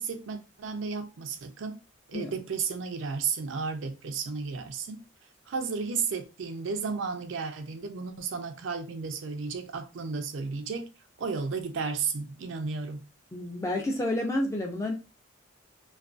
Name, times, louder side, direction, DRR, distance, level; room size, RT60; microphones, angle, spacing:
voice 1, 0.0-1.8 2.1-5.0 5.5-10.9 11.2-13.1, right 5 dB, 70° right, 0.4 m, -33 dB
voice 2, 13.3-14.9, left 1 dB, 15° left, 0.4 m, -29 dB
2.4 x 2.2 x 2.4 m
head